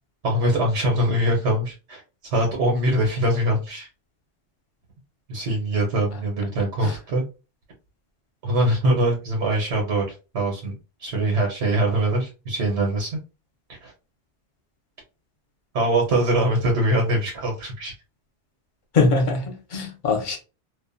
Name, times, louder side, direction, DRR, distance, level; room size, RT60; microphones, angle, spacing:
voice 1, 0.2-3.9 5.3-7.2 8.4-10.7 11.0-13.2 13.8-13.9 15.7-17.9, right 1 dB, 85° right, 1.1 m, -23 dB
voice 2, 18.9-20.4, left 3 dB, 50° left, 0.8 m, -22 dB
2.5 x 2.2 x 2.5 m
omnidirectional pair, 1.1 m